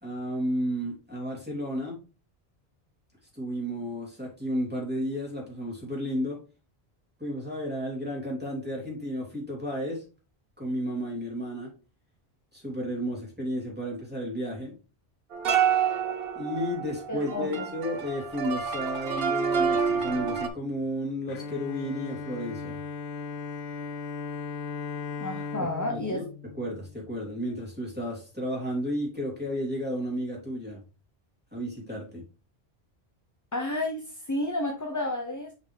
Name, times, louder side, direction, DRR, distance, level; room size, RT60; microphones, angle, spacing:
voice 1, 0.0-2.0 3.3-6.4 7.2-10.0 10.6-11.7 12.5-14.8 16.3-22.8 25.9-26.3 26.5-30.8 31.5-32.2, equal, 10° right, -3 dB, 3.0 m, -32 dB
sound 1, 15.3-20.5, right 7 dB, 65° right, 1.0 m, -28 dB
voice 2, 17.1-17.7 25.2-26.2 33.5-35.5, left 1 dB, 20° left, 2 dB, 0.7 m, -31 dB
Bowed string instrument, 21.3-27.5, left 5 dB, 85° left, 1.0 m, -37 dB
6.0 x 5.6 x 3.2 m, 0.33 s
omnidirectional pair, 1.1 m